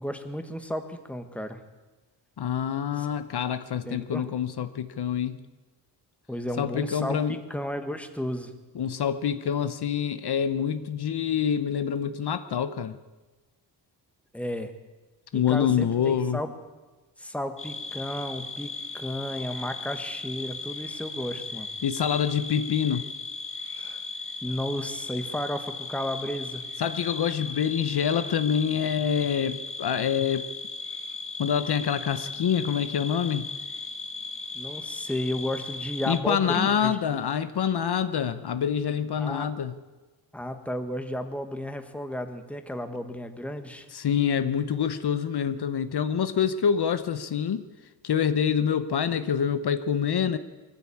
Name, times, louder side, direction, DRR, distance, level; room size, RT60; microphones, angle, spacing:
voice 1, 0.0-1.6 3.0-3.1 3.8-4.3 6.3-8.5 14.3-14.7 15.3-16.5 17.2-21.7 23.8-24.0 24.4-26.6 34.5-37.0 39.2-39.5 40.3-43.9, left 1 dB, 5° left, 7 dB, 1.5 m, -33 dB
voice 2, 2.4-5.4 6.6-7.4 8.7-13.0 15.3-16.4 21.8-23.1 26.8-30.5 31.4-33.5 36.1-39.7 43.9-47.6 48.0-50.4, left 8 dB, 60° left, 11 dB, 1.0 m, -26 dB
sound 1, 17.6-36.2, left 3 dB, 30° left, 1.7 m, -37 dB
23.0 x 14.5 x 8.5 m, 1.2 s
wide cardioid pair, 160°, 44 cm